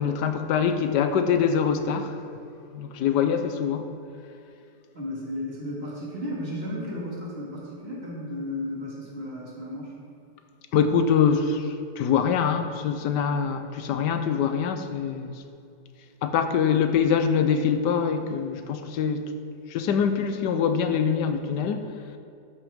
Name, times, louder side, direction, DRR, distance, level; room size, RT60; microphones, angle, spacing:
voice 1, 0.0-2.2 2.7-3.9 10.7-15.4 16.2-19.3 19.7-21.9, left 7 dB, 75° left, 8 dB, 1.3 m, -24 dB
voice 2, 4.9-9.9, left 1 dB, 30° right, -6 dB, 2.5 m, -34 dB
13.0 x 6.1 x 5.1 m, 2.6 s
omnidirectional pair, 2.0 m